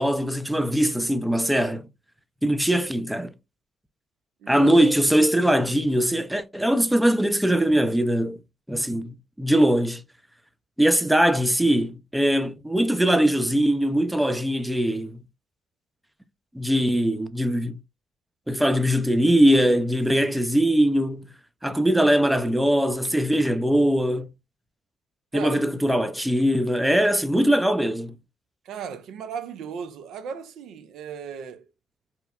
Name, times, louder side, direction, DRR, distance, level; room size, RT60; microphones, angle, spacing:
voice 1, 0.0-1.8 2.4-3.3 4.5-8.4 8.7-10.0 10.8-15.2 16.5-17.8 18.5-21.3 21.6-24.3 25.3-28.1, right 1 dB, 5° right, 0.4 m, -21 dB
voice 2, 4.4-4.8 20.1-20.4 25.3-25.7 28.6-31.7, right 7 dB, 70° right, 0.4 m, -36 dB
2.9 x 2.0 x 2.3 m
hypercardioid pair, 50°, 0 cm